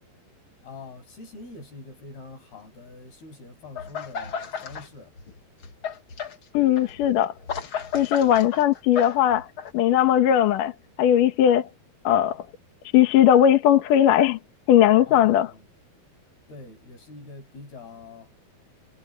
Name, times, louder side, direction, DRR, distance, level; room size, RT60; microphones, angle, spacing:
voice 1, 0.6-5.1 15.1-15.6 16.5-18.3, left 3 dB, 85° left, 9.8 m, -44 dB
sound 1, 3.8-4.9 5.2-9.7, left 7 dB, 45° left, 2.1 m, -34 dB
voice 2, 6.5-7.3 7.9-9.5 9.7-10.7 11.0-11.7 12.0-12.4 12.9-14.4 14.7-15.5, left 10 dB, 70° left, 2.7 m, -18 dB
omnidirectional pair, 4.3 m